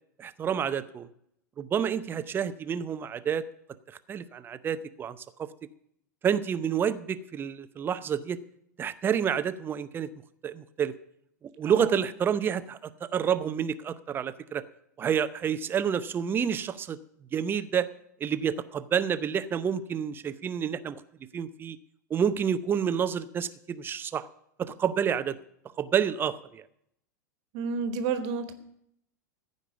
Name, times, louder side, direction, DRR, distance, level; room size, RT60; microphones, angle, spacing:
voice 1, 0.2-1.1 1.6-3.5 4.1-5.5 6.2-8.4 8.8-10.1 10.4-10.9 11.6-14.6 15.0-17.0 17.3-17.9 18.2-21.0 21.3-21.8 22.1-24.3 24.6-25.4 25.8-26.6, right 8 dB, 20° right, 13 dB, 0.7 m, -29 dB
voice 2, 11.6-12.0 27.5-28.5, right 5 dB, 45° right, 9 dB, 1.5 m, -31 dB
15.0 x 5.3 x 9.4 m, 0.73 s
figure-of-eight pair, 90°, 10 cm